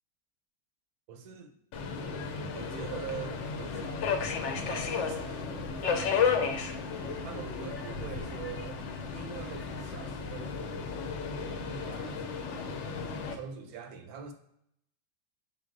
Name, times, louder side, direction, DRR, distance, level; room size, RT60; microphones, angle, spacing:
voice 1, 1.1-1.5 2.5-4.0 4.6-6.7 7.2-11.1 11.4-12.2 13.3-14.3, right 7 dB, 80° right, 6 dB, 1.1 m, -44 dB
Subway metro underground, 1.7-13.3, left 5 dB, 65° left, 0.7 m, -33 dB
4.7 x 3.9 x 2.5 m, 0.74 s
omnidirectional pair, 1.6 m